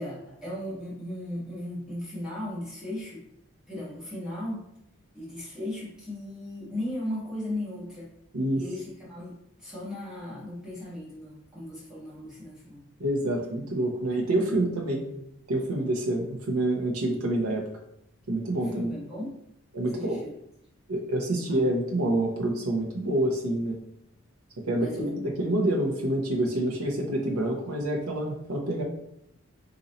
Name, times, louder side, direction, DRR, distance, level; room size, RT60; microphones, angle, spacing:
voice 1, 0.0-3.2 3.7-4.7 5.1-8.1 8.5-12.9 15.1-15.2 18.6-19.4 19.9-20.3 21.5-21.6 24.7-25.1 27.6-27.7, left 1 dB, 5° right, -8 dB, 1.3 m, -37 dB
voice 2, 13.0-15.0 15.5-17.6 18.3-18.9 19.7-20.2 20.9-23.8 24.7-28.8, right 1 dB, 90° right, 0 dB, 0.8 m, -27 dB
4.0 x 2.7 x 4.1 m, 0.76 s
head